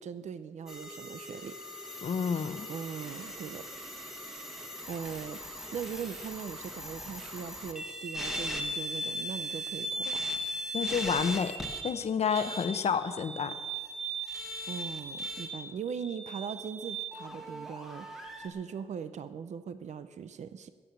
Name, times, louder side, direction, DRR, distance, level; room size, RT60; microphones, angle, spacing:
voice 1, 0.0-1.6 2.7-3.7 4.9-10.2 14.7-20.7, right 7 dB, 70° right, 12 dB, 0.6 m, -40 dB
sound 1, 0.7-11.9 12.3-18.5, equal, 5° right, 1.4 m, -38 dB
voice 2, 2.0-2.7 10.7-11.5 11.8-13.5, left 6 dB, 60° left, 11 dB, 0.8 m, -29 dB
16.0 x 7.6 x 8.2 m, 1.5 s
wide cardioid pair, 180°, 12 cm